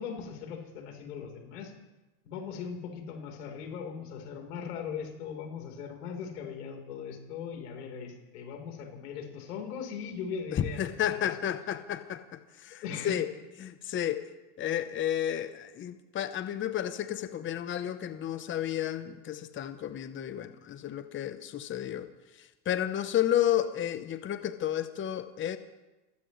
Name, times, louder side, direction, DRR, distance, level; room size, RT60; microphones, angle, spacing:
voice 1, 0.0-1.7 2.2-10.9 11.2-11.3 12.8-13.2, left 6 dB, 80° left, 3 dB, 4.2 m, -39 dB
voice 2, 10.5-13.3 13.6-14.3 14.6-22.1 22.7-25.6, left 11 dB, 25° left, 11 dB, 0.9 m, -32 dB
28.5 x 15.5 x 3.2 m, 1.0 s
supercardioid pair, 115°, 45 cm